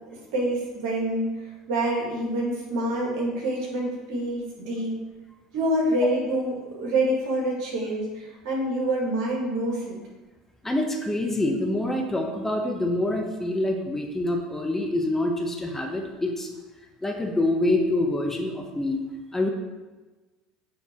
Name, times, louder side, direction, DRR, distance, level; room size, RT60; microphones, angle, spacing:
voice 1, 0.3-1.2 1.7-4.9 5.5-10.0, right 1 dB, 65° right, -3 dB, 2.2 m, -26 dB
voice 2, 10.6-16.5 17.0-19.0 19.3-19.5, left 1 dB, 10° left, 2 dB, 0.9 m, -26 dB
8.2 x 3.5 x 4.4 m, 1.2 s
hypercardioid pair, 70°, 3 cm